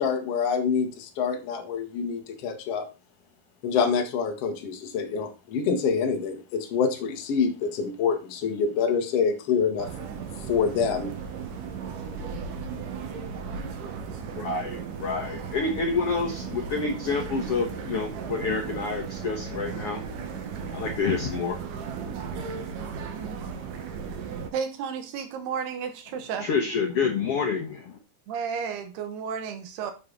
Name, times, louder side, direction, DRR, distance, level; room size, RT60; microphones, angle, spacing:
voice 1, 0.0-2.9 3.6-9.9 10.5-11.1, left 6 dB, 55° left, 4 dB, 1.7 m, -26 dB
sound 1, 9.8-24.5, right 6 dB, 65° right, 2.4 m, -36 dB
voice 2, 14.2-22.7 26.4-28.0, left 4 dB, 80° left, 3 dB, 1.3 m, -29 dB
voice 3, 24.5-26.5 28.3-29.9, right 6 dB, 85° right, 8 dB, 3.2 m, -32 dB
10.0 x 6.7 x 3.9 m, 0.32 s
omnidirectional pair, 4.5 m